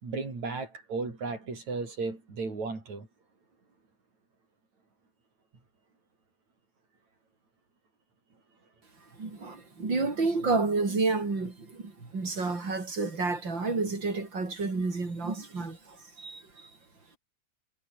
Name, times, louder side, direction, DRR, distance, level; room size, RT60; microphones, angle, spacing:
voice 1, 0.0-3.1, right 4 dB, 60° right, 7.7 m, -35 dB
voice 2, 9.1-16.7, right 3 dB, 35° right, 5.4 m, -30 dB
omnidirectional pair, 3.7 m